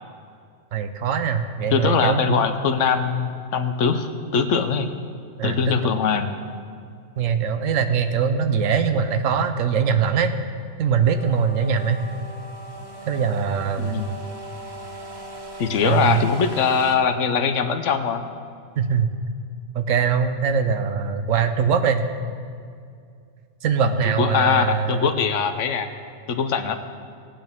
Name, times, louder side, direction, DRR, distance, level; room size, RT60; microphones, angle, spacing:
voice 1, 0.7-2.4 5.4-5.8 7.2-10.3 10.8-12.0 13.1-14.0 15.8-16.2 18.8-19.1 19.7-22.0 23.6-25.1, right 6 dB, 80° right, 9 dB, 1.1 m, -22 dB
voice 2, 1.7-4.9 5.4-6.3 13.8-14.1 15.6-18.2 23.8-25.9 26.3-26.8, left 6 dB, 70° left, 9 dB, 1.0 m, -22 dB
sound 1, 11.0-17.0, right 1 dB, 25° right, 0.5 m, -38 dB
18.0 x 8.8 x 3.5 m, 2.3 s
omnidirectional pair, 1.3 m